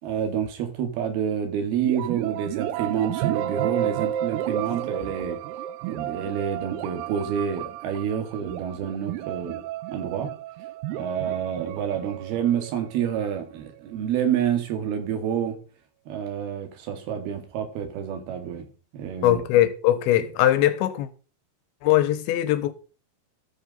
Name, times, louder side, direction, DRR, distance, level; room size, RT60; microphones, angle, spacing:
voice 1, 0.0-5.4 5.9-9.6 9.9-10.3 10.9-15.6 16.1-18.7 18.9-19.4, right 8 dB, 60° right, 3.7 m, -28 dB
sound 1, 1.8-13.5, right 12 dB, 85° right, 2.4 m, -32 dB
voice 2, 19.2-21.1 21.8-22.7, left 13 dB, 80° left, 3.2 m, -21 dB
13.0 x 7.0 x 5.5 m
omnidirectional pair, 5.4 m